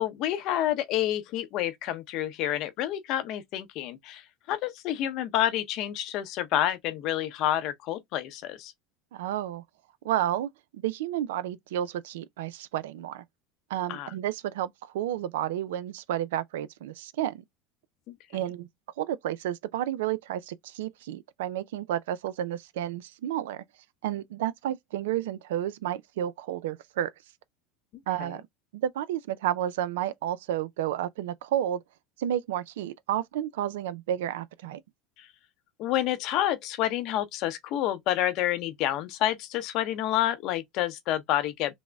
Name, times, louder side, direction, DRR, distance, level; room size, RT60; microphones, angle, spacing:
voice 1, 0.0-4.2 4.5-8.7 13.9-14.1 18.1-18.2 28.2-28.3 35.2-35.3 35.8-41.7, left 12 dB, 60° left, 0.6 m, -29 dB
voice 2, 9.1-9.6 10.0-13.2 13.7-17.4 18.3-18.7 19.0-23.6 24.0-27.1 28.1-28.5 28.7-31.8 32.2-34.8, right 11 dB, 80° right, 0.3 m, -31 dB
5.9 x 2.1 x 2.2 m
hypercardioid pair, 95°, 0 cm